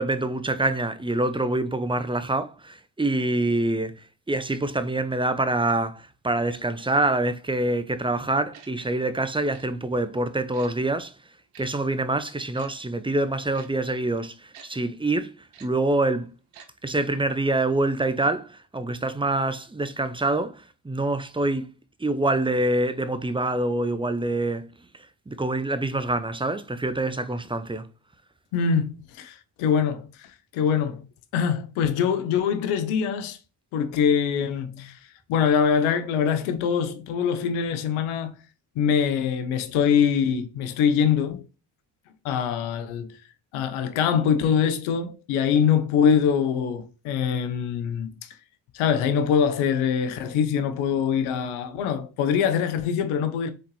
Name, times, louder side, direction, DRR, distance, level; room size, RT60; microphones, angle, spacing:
voice 1, 0.0-11.1 11.6-15.3 15.6-16.3 16.8-21.7 22.0-24.7 25.3-27.9, right 2 dB, 10° right, 0.7 m, -26 dB
Tick-tock, 8.5-8.7 9.5-9.7 10.5-10.7 11.5-11.7 12.5-12.7 13.5-13.7 14.5-14.7 15.5-15.7 16.5-16.7 17.0-17.1, right 7 dB, 85° right, 1.0 m, -48 dB
voice 2, 28.5-30.3 30.5-31.0 31.3-33.4 33.7-35.0 35.3-38.4 38.8-41.4 42.2-43.1 43.5-48.1 48.7-53.5, left 7 dB, 85° left, 0.8 m, -23 dB
4.3 x 3.9 x 3.1 m
supercardioid pair, 50°, 48 cm